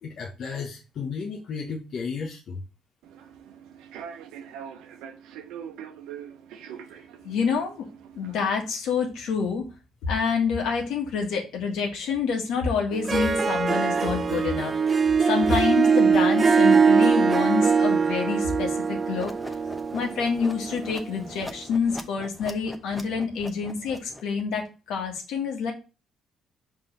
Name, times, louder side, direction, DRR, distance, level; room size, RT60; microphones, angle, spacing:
voice 1, 0.0-2.6, left 5 dB, 60° left, 0 dB, 1.0 m, -33 dB
Human voice / Subway metro underground, 3.0-8.5, right 8 dB, 90° right, 0.7 m, -43 dB
voice 2, 7.2-7.8 8.2-9.7 10.1-19.3 19.9-25.7, left 5 dB, 80° left, 2 dB, 1.8 m, -27 dB
Harp, 12.9-21.5, right 5 dB, 35° right, 0.5 m, -22 dB
sound 1, 19.1-24.4, left 1 dB, 10° left, 0.9 m, -42 dB
5.1 x 3.8 x 5.5 m, 0.31 s
cardioid pair, 95°, 0 cm